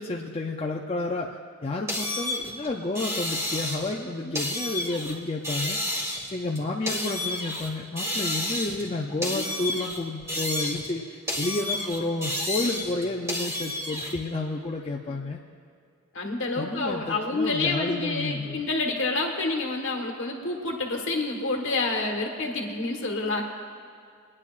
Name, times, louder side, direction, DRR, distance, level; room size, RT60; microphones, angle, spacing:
voice 1, 0.0-5.8 6.3-15.4 16.6-18.6, left 2 dB, 25° left, -1 dB, 0.5 m, -31 dB
sound 1, 1.9-4.0 4.3-5.1 5.4-7.7 8.0-8.9 9.2-11.0 11.3-14.1, left 1 dB, 15° right, 1.7 m, -31 dB
voice 2, 4.0-4.3 9.3-9.4 16.1-23.4, left 3 dB, 60° left, 1 dB, 1.4 m, -28 dB
23.5 x 9.7 x 2.5 m, 2.3 s
head